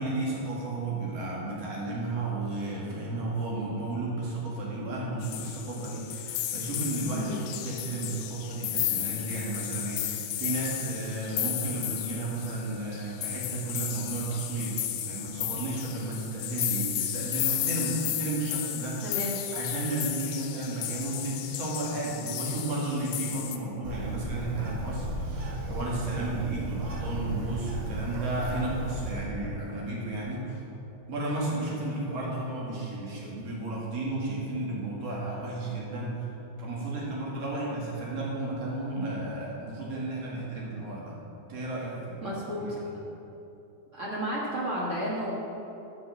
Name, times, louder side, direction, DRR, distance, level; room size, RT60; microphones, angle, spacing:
voice 1, 0.0-19.2 19.5-30.6 31.1-36.2 36.6-41.2 41.5-42.3 42.6-42.7, right 2 dB, 55° right, -4 dB, 2.9 m, -33 dB
sound 1, 5.2-23.6, left 12 dB, 80° left, 1.4 m, -34 dB
voice 2, 19.0-19.4 42.2-42.8 43.9-45.3, equal, 40° right, -6 dB, 1.1 m, -32 dB
Bird, 23.8-29.1, right 1 dB, 80° right, 3.1 m, -34 dB
8.8 x 5.9 x 6.8 m, 2.9 s
omnidirectional pair, 3.5 m